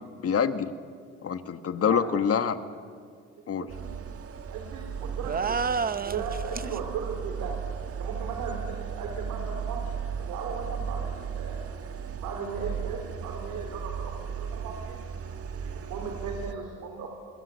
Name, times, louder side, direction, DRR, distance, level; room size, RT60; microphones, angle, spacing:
voice 1, 0.2-0.7 1.2-2.6 3.5-3.7, left 7 dB, 50° left, 10 dB, 1.5 m, -26 dB
voice 2, 1.9-2.2 3.6-3.9 4.5-7.6 8.0-9.9 10.2-11.7 12.2-15.0 15.5-17.1, right 5 dB, 90° right, 2 dB, 3.5 m, -37 dB
sound 1, 3.7-16.5, right 7 dB, 50° right, 1.5 m, -36 dB
sound 2, 5.2-6.8, right 5 dB, 30° right, 0.8 m, -29 dB
27.0 x 21.5 x 8.2 m, 2.2 s
cardioid pair, 90°, 30 cm